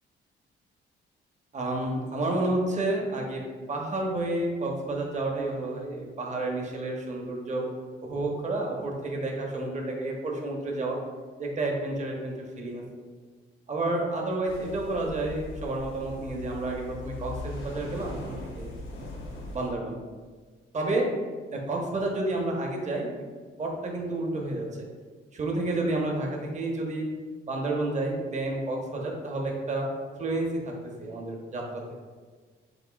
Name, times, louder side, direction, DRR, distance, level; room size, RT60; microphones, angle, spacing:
voice 1, 1.5-3.4 3.7-7.7 8.0-11.0 11.4-12.8 13.7-18.7 19.5-20.0 20.7-21.1 21.5-23.2 23.6-24.7 25.3-27.1 27.5-29.9 30.2-30.7 31.0-31.8, right 2 dB, 35° right, 0 dB, 0.9 m, -30 dB
sound 1, 14.5-19.7, left 2 dB, 80° left, 1.2 m, -40 dB
7.7 x 2.7 x 2.4 m, 1.5 s
cardioid pair, 90°, 20 cm